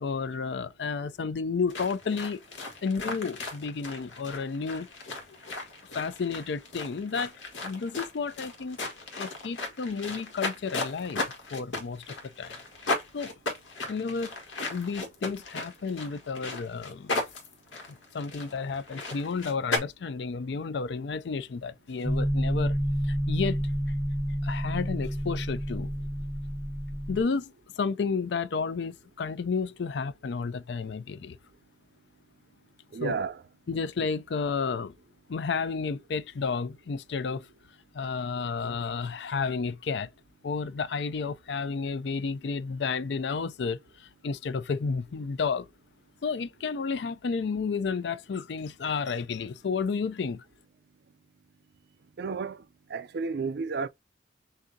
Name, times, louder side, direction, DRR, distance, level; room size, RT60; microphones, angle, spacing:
voice 1, 0.0-2.4 2.8-4.9 5.9-7.3 7.6-8.8 9.2-12.6 13.1-13.3 13.9-14.3 14.7-17.1 18.1-22.8 23.0-23.7 24.4-25.9 27.1-31.4 33.0-33.1 33.7-34.9 35.3-37.5 37.9-40.1 40.4-45.7 46.2-50.4, left 5 dB, 65° left, 0.4 m, -31 dB
sound 1, 1.7-19.8, left 2 dB, 90° left, 1.7 m, -36 dB
sound 2, 22.0-27.2, equal, 5° left, 0.5 m, -29 dB
voice 2, 32.9-33.4 52.2-52.6 52.9-53.9, right 4 dB, 60° right, 0.4 m, -31 dB
6.5 x 2.5 x 2.7 m
head